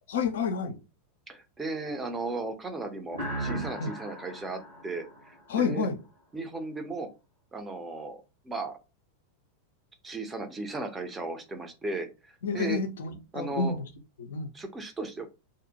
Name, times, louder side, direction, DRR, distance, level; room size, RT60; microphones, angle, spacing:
voice 1, 0.1-0.8 3.8-3.9 5.5-6.0 12.4-13.9 14.2-14.5, left 5 dB, 60° left, 0.4 m, -29 dB
voice 2, 1.3-5.9 6.3-7.1 7.5-8.8 10.0-12.8 13.3-13.8 14.5-15.3, right 2 dB, 15° right, 0.6 m, -36 dB
sound 1, 3.1-5.8, right 1 dB, 80° right, 1.1 m, -37 dB
2.5 x 2.1 x 2.8 m
figure-of-eight pair, 90°, 0 cm